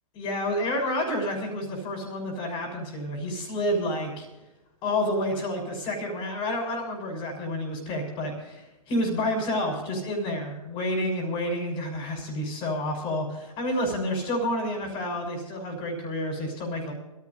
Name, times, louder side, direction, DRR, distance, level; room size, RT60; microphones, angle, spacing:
voice 1, 0.2-4.3 4.8-16.9, left 1 dB, 25° left, -1 dB, 6.4 m, -29 dB
28.0 x 16.0 x 2.8 m, 1.0 s
figure-of-eight pair, 120°, 19 cm